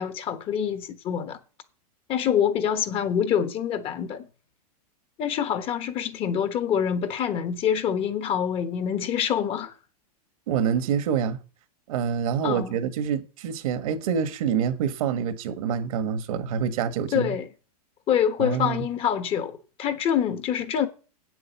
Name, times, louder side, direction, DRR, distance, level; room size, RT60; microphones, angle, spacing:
voice 1, 0.0-1.4 2.1-4.3 5.2-9.7 12.4-12.7 17.1-17.5 18.1-20.9, left 8 dB, 25° left, 1.3 m, -26 dB
voice 2, 10.5-11.4 11.9-17.3 18.4-18.8, right 7 dB, 60° right, 1.5 m, -26 dB
8.5 x 7.8 x 7.0 m
supercardioid pair, 150°, 20 cm